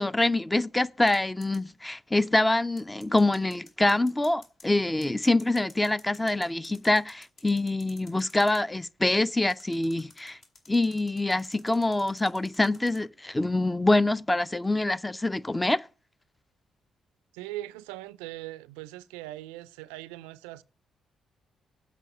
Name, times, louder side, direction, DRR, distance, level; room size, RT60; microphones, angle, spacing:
voice 1, 0.0-10.4 10.7-15.9, left 2 dB, 15° left, 0.5 m, -25 dB
sound 1, 1.1-1.6 2.8-4.7 5.0-8.6 9.5-13.0, left 3 dB, 55° left, 2.3 m, -53 dB
voice 2, 17.3-20.6, right 16 dB, 80° right, 0.3 m, -40 dB
8.2 x 5.2 x 6.5 m
hypercardioid pair, 45°, 0 cm